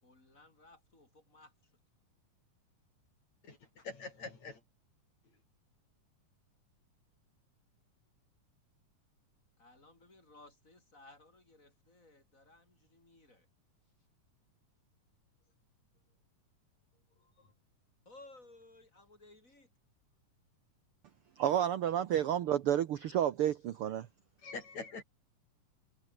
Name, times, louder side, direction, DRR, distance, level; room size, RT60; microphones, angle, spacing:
voice 1, 0.0-1.5 9.6-13.5 18.0-19.7, left 2 dB, 20° left, 6.6 m, -59 dB
voice 2, 3.4-4.6 17.4-17.5 24.4-25.0, left 4 dB, 55° left, 6.5 m, -45 dB
voice 3, 21.4-24.1, right 10 dB, 70° right, 1.3 m, -30 dB
omnidirectional pair, 3.8 m